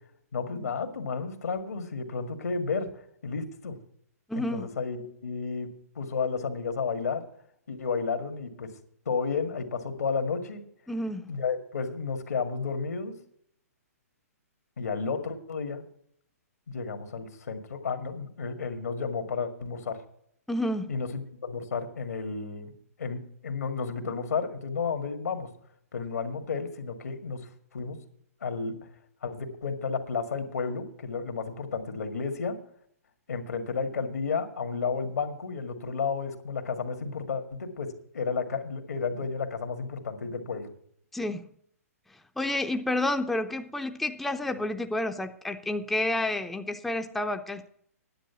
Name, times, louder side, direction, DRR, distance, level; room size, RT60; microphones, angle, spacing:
voice 1, 0.3-2.9 3.2-3.8 4.5-5.7 6.0-7.2 7.7-8.7 9.1-10.6 11.3-13.1 14.8-15.8 16.7-20.0 20.9-22.7 23.0-25.5 25.9-28.0 28.4-28.7 29.2-32.6 33.3-40.7, left 5 dB, 85° left, 7 dB, 1.8 m, -32 dB
voice 2, 4.3-4.7 10.9-11.3 20.5-20.9 41.1-41.5 42.4-47.7, left 1 dB, ahead, 6 dB, 0.4 m, -30 dB
10.0 x 8.3 x 6.9 m, 0.67 s
hypercardioid pair, 150°, 9 cm